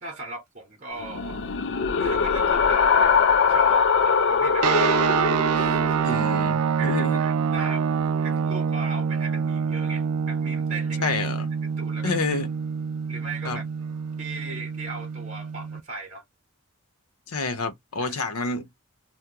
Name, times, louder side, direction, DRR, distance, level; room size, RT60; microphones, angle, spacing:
voice 1, 0.0-1.4 2.0-5.0 5.5-6.1 6.8-7.9 8.2-11.1 11.6-12.4 13.1-13.6 14.2-16.2 18.0-18.2, right 3 dB, 35° right, 0.7 m, -38 dB
sound 1, 1.0-6.1, left 5 dB, 55° left, 0.4 m, -22 dB
sound 2, 4.6-15.8, right 6 dB, 90° right, 0.4 m, -26 dB
voice 2, 6.0-7.2 11.0-11.4 12.0-12.5 13.4-13.6 17.3-18.7, left 3 dB, 80° left, 0.7 m, -28 dB
2.8 x 2.1 x 3.6 m
head